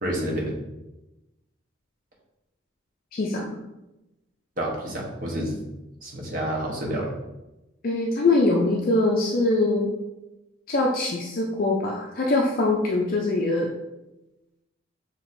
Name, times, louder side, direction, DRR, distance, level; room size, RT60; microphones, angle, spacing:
voice 1, 0.0-0.5 4.6-5.5 6.0-7.1, right 1 dB, 45° right, -1 dB, 1.0 m, -29 dB
voice 2, 3.1-3.6 7.8-9.9 10.7-13.7, left 2 dB, 45° left, -1 dB, 0.4 m, -23 dB
6.1 x 2.8 x 2.6 m, 0.98 s
head